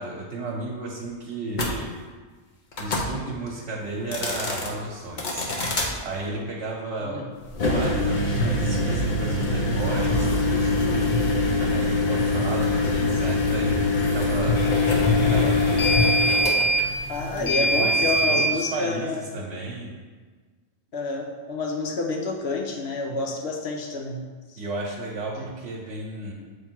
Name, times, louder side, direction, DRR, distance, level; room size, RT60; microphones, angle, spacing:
voice 1, 0.0-2.0 2.8-7.3 7.5-11.2 11.6-14.6 15.1-15.9 17.3-20.0 24.6-26.3, right 2 dB, 80° right, -3 dB, 1.1 m, -33 dB
sound 1, 1.5-1.7 2.7-3.1 4.0-4.7 5.2-5.9 7.5-18.5, left 1 dB, 50° left, 0.8 m, -23 dB
voice 2, 17.1-19.2 20.9-24.2 24.5-24.6 25.4-25.5, left 3 dB, 75° left, 1 dB, 1.1 m, -29 dB
7.1 x 3.2 x 4.5 m, 1.4 s
omnidirectional pair, 1.1 m